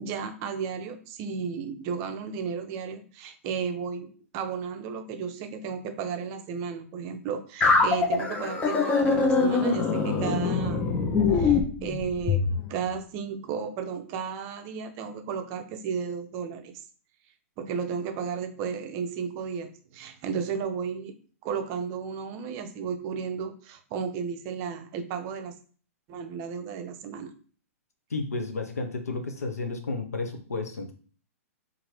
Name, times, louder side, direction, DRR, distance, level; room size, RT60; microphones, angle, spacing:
voice 1, 0.0-10.9 11.3-16.7 17.6-21.1 21.4-25.6 26.1-27.3, right 6 dB, 35° right, 7 dB, 0.5 m, -34 dB
sound 1, 7.6-12.5, left 4 dB, 20° left, 0.5 m, -23 dB
voice 2, 28.1-30.9, left 3 dB, 85° left, 5 dB, 0.6 m, -32 dB
2.8 x 2.5 x 3.1 m, 0.42 s
hypercardioid pair, 115°, 8 cm